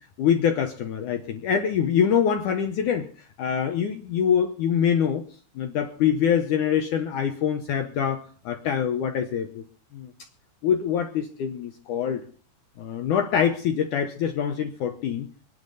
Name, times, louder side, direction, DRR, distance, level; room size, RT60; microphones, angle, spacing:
voice 1, 0.2-3.1 3.4-5.2 5.6-9.6 9.9-10.1 10.6-12.2 12.8-15.3, left 8 dB, 75° left, 6 dB, 1.9 m, -24 dB
25.0 x 10.0 x 4.1 m, 0.41 s
omnidirectional pair, 4.9 m